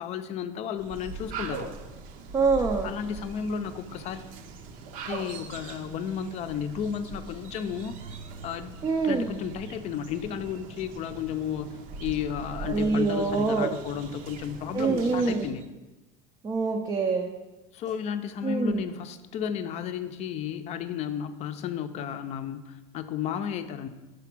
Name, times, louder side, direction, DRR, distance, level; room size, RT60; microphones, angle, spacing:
voice 1, 0.0-1.7 2.8-4.3 5.1-7.9 8.4-15.6 17.7-23.9, left 8 dB, 45° left, 10 dB, 0.5 m, -33 dB
sound 1, 0.8-15.6, right 4 dB, 60° right, 0.7 m, -41 dB
voice 2, 2.3-2.9 8.8-9.3 12.6-13.7 14.7-15.5 16.4-17.3 18.4-18.8, right 4 dB, 20° right, 1 dB, 0.5 m, -25 dB
5.7 x 5.0 x 6.0 m, 1.1 s
cardioid pair, 140°, 16 cm